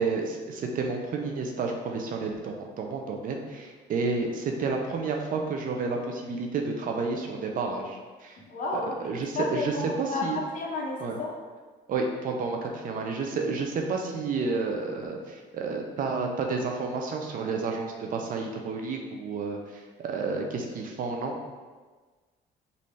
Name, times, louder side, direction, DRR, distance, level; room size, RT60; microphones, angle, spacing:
voice 1, 0.0-8.4 8.7-10.4 11.0-11.2 11.9-21.4, right 4 dB, 55° right, 2 dB, 0.7 m, -30 dB
voice 2, 8.5-10.3 10.5-11.3, left 3 dB, 50° left, -1 dB, 1.0 m, -32 dB
5.3 x 2.7 x 3.3 m, 1.4 s
cardioid pair, 110°, 17 cm